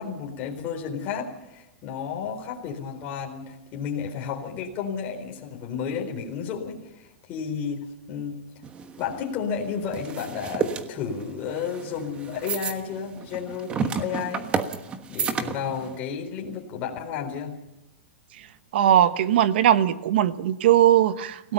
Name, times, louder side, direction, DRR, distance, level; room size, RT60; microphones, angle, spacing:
voice 1, 0.0-8.4 9.0-14.5 15.1-17.5, left 6 dB, 30° left, 1 dB, 4.2 m, -32 dB
sound 1, 8.6-16.0, right 6 dB, 15° right, 1.3 m, -31 dB
voice 2, 18.7-21.5, right 11 dB, 60° right, 13 dB, 1.3 m, -19 dB
29.5 x 17.5 x 5.7 m, 0.94 s
supercardioid pair, 165°, 6 cm